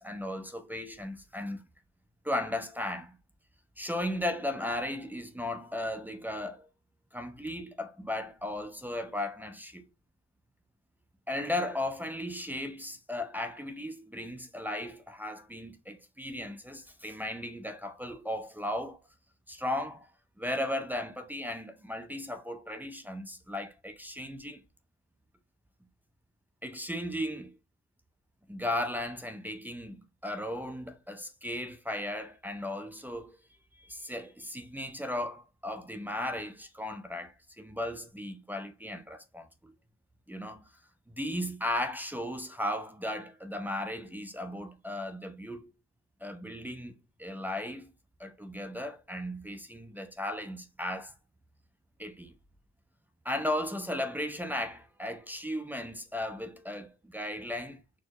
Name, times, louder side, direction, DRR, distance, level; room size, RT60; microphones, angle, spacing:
voice 1, 0.0-1.6 2.2-3.2 3.8-6.7 7.1-9.8 11.3-19.0 19.5-20.1 20.4-24.6 26.6-27.6 28.5-33.4 33.8-39.7 40.3-40.6 41.1-45.7 46.2-47.9 48.2-51.1 52.0-52.3 53.2-58.0, left 1 dB, 5° right, 0.5 m, -36 dB
4.3 x 2.0 x 2.8 m
cardioid pair, 90°, 30 cm